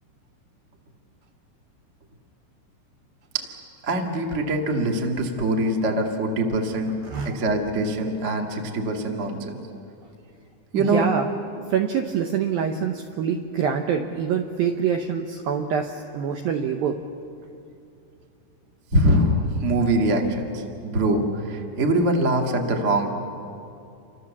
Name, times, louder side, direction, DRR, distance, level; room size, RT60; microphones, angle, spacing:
voice 1, 3.8-6.9 7.2-9.6 10.7-11.1 18.9-23.1, right 1 dB, 45° right, 2 dB, 0.9 m, -23 dB
voice 2, 7.0-7.4 10.7-11.3 11.7-17.0, right 7 dB, 80° right, 4 dB, 2.1 m, -25 dB
29.5 x 25.0 x 7.2 m, 2.6 s
omnidirectional pair, 5.4 m